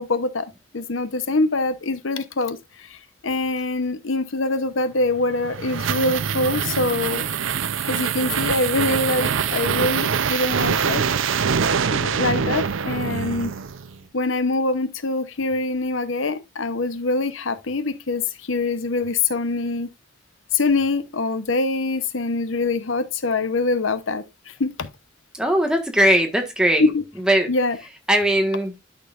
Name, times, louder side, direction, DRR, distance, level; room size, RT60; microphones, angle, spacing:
voice 1, 0.0-3.0 3.2-7.3 7.8-11.0 11.9-13.5 14.1-19.9 20.5-24.9 26.8-27.0 27.5-27.8, left 3 dB, 85° left, 0.9 m, -24 dB
sound 1, 5.1-14.0, right 6 dB, 90° right, 0.6 m, -24 dB
voice 2, 25.4-26.9 27.3-27.5 28.1-28.8, right 1 dB, 5° right, 1.4 m, -19 dB
11.5 x 6.3 x 2.5 m
head